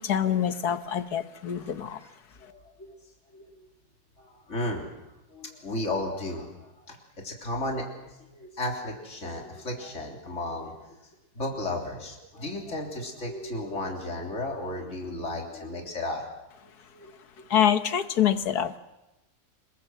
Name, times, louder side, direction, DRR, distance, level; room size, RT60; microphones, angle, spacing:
voice 1, 0.0-2.0 17.5-18.8, left 9 dB, 80° left, 10 dB, 1.7 m, -25 dB
voice 2, 2.4-2.9 3.3-3.6 4.2-4.9 5.3-7.0 7.2-10.8 11.4-16.4 16.9-17.1, left 1 dB, 45° left, 0 dB, 3.9 m, -34 dB
28.0 x 21.5 x 7.8 m, 0.99 s
omnidirectional pair, 1.7 m